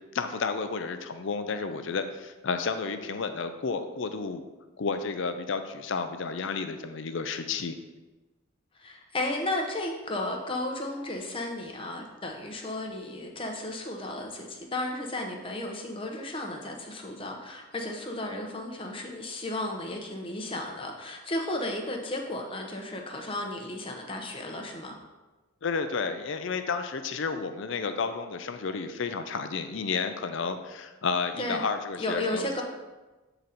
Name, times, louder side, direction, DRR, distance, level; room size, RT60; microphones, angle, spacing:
voice 1, 0.1-4.4 4.8-7.8 25.6-32.5, left 5 dB, 60° left, 8 dB, 0.5 m, -31 dB
voice 2, 8.7-25.0 31.4-31.6 32.0-32.6, left 1 dB, 25° left, 2 dB, 0.8 m, -34 dB
7.8 x 3.9 x 4.2 m, 1.2 s
head